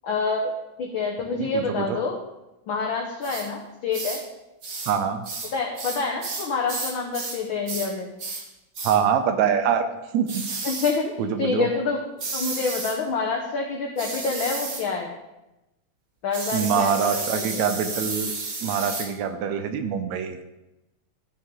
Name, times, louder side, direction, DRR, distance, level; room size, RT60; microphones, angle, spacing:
voice 1, 0.0-0.5 0.8-2.2 2.7-4.2 5.5-8.1 10.6-12.0 12.3-15.1 16.2-17.7, left 4 dB, 80° left, 1 dB, 1.1 m, -27 dB
voice 2, 1.4-2.0 4.9-5.2 8.8-9.8 10.1-10.4 11.2-11.7 16.5-18.3 18.6-20.4, right 7 dB, 75° right, 8 dB, 1.9 m, -24 dB
sound 1, 3.2-3.5 3.9-4.2 4.6-5.0 5.2-7.4 7.7-7.9 8.2-8.5 8.7-9.0 10.3-11.0 12.2-13.0 14.0-14.9 16.3-19.1, right 3 dB, 55° right, 1.0 m, -32 dB
13.0 x 5.9 x 3.7 m, 0.97 s
omnidirectional pair, 3.4 m